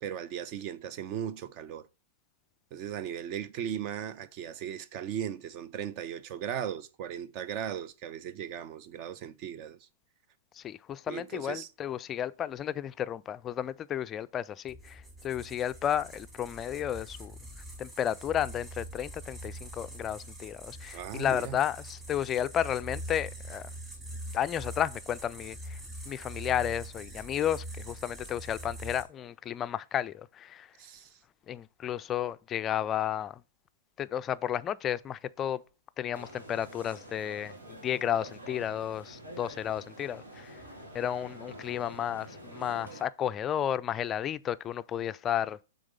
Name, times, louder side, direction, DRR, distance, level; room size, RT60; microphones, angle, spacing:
voice 1, 0.0-1.9 2.7-9.8 11.1-11.7 20.9-21.6 30.8-31.2, right 9 dB, 40° right, 0.6 m, -37 dB
voice 2, 10.6-17.3 17.8-23.7 24.3-25.8 26.1-30.7 31.5-33.4 34.0-35.6 36.0-40.6 40.9-45.6, left 10 dB, 25° left, 0.3 m, -32 dB
sound 1, 14.7-29.0, right 1 dB, 15° right, 3.4 m, -43 dB
sound 2, 36.1-43.0, right 1 dB, 85° right, 2.5 m, -47 dB
6.4 x 4.1 x 4.9 m
hypercardioid pair, 120°, 0 cm